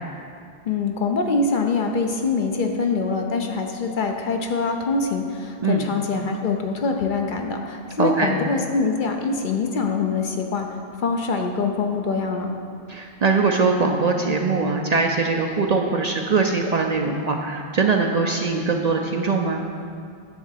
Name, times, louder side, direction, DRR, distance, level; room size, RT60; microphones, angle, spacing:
voice 1, 0.7-12.5, left 4 dB, 55° left, 3 dB, 0.8 m, -24 dB
voice 2, 8.0-8.3 12.9-19.6, right 4 dB, 50° right, 3 dB, 0.5 m, -22 dB
9.7 x 3.8 x 7.3 m, 2.3 s
omnidirectional pair, 1.1 m